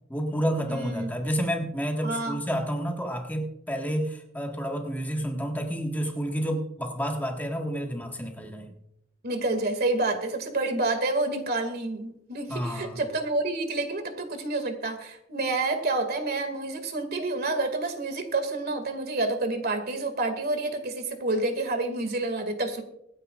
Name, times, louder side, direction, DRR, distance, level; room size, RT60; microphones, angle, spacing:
voice 1, 0.1-8.7 12.5-13.0, equal, 10° left, 1 dB, 1.6 m, -30 dB
voice 2, 0.7-1.1 2.0-2.4 9.2-22.8, right 2 dB, 55° right, 6 dB, 2.3 m, -28 dB
25.5 x 9.9 x 2.5 m, 0.79 s
head